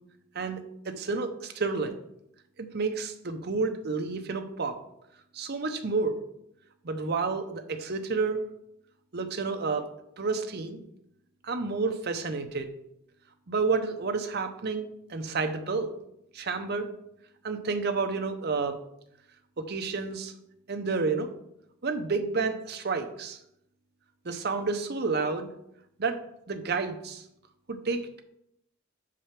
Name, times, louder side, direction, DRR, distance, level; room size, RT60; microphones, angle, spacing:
voice 1, 0.8-2.0 2.6-4.8 5.3-6.2 6.8-8.4 9.1-9.9 10.2-10.8 11.4-12.7 13.5-15.9 16.3-16.9 17.4-18.8 19.6-20.3 20.7-21.3 21.8-23.4 24.2-25.5 26.0-26.2 26.5-27.2 27.7-28.2, right 4 dB, 50° right, 6 dB, 0.7 m, -30 dB
5.7 x 4.9 x 5.8 m, 0.78 s
head